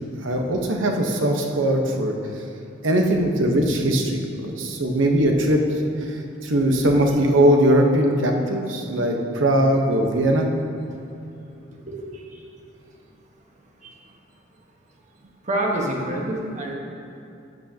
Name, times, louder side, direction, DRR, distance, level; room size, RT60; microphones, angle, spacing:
voice 1, 0.2-2.1 2.8-5.6 6.4-10.5, right 1 dB, 80° right, 2 dB, 1.1 m, -20 dB
voice 2, 11.8-12.4 13.8-13.9 15.4-16.7, right 1 dB, 40° right, -1 dB, 1.3 m, -27 dB
12.0 x 8.8 x 2.9 m, 2.6 s
head